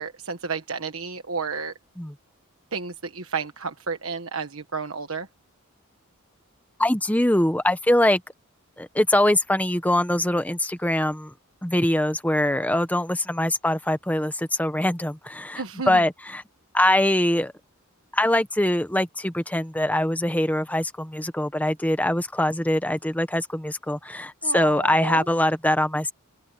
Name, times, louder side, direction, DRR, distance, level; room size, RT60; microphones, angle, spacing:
voice 1, 0.0-1.7 2.7-5.3 15.6-16.0 24.4-25.2, right 5 dB, 70° right, 1.3 m, -31 dB
voice 2, 6.8-8.2 8.8-11.3 11.6-16.4 16.7-17.5 18.1-26.1, left 1 dB, 5° left, 1.0 m, -23 dB
open air
head